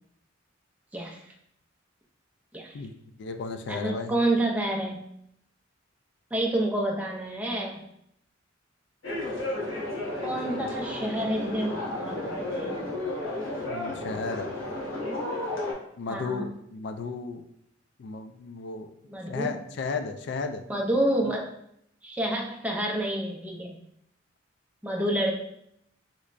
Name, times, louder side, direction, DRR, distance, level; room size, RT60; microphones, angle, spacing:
voice 1, 0.9-1.2 2.5-2.8 3.7-5.0 6.3-7.8 10.2-12.8 16.1-16.5 19.1-19.5 20.7-21.5 22.0-23.7 24.8-25.3, right 1 dB, 10° right, -1 dB, 0.5 m, -28 dB
voice 2, 2.7-4.1 10.4-10.7 13.6-14.5 16.0-17.4 18.0-18.9 19.3-20.6, left 4 dB, 60° left, 7 dB, 0.3 m, -34 dB
sound 1, 9.0-15.7, left 1 dB, 85° left, 1.0 m, -33 dB
3.2 x 3.1 x 2.5 m, 0.73 s
head